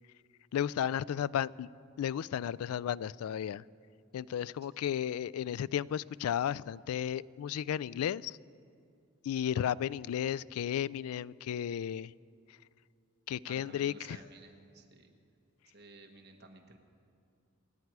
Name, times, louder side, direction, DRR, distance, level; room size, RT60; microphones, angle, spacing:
voice 1, 0.5-1.7 2.0-3.6 4.1-8.4 9.2-12.1 13.3-14.2, left 9 dB, 90° left, 18 dB, 0.3 m, -34 dB
voice 2, 13.5-15.1 15.7-16.8, right 3 dB, 50° right, 3 dB, 1.4 m, -54 dB
27.5 x 9.3 x 4.7 m, 2.4 s
head